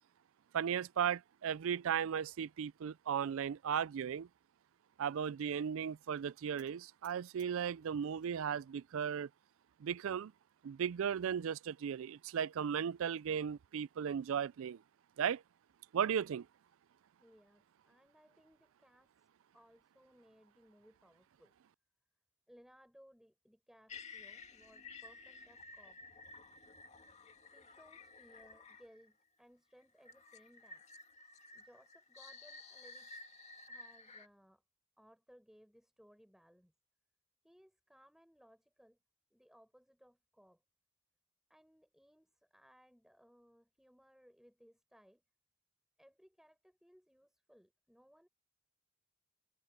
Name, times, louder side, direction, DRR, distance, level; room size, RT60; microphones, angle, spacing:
voice 1, 0.5-4.3 5.0-9.3 9.8-10.3 10.6-14.8 15.2-15.4 15.9-16.5, right 8 dB, 60° right, 0.3 m, -36 dB
sound 1, 6.6-8.4 8.7-9.4 9.9-10.0 10.3-10.4 10.8-10.9 12.0-12.6, right 15 dB, 90° right, 7.0 m, -71 dB
voice 2, 17.2-19.1 19.5-21.5 22.5-26.0 27.5-30.8 31.5-33.1 33.7-34.6 35.0-36.7 37.4-39.0 39.3-40.6 41.5-45.2 46.0-48.3, equal, ahead, 6.9 m, -64 dB
sound 2, 23.9-29.1 30.0-34.3, left 3 dB, 30° left, 2.1 m, -54 dB
head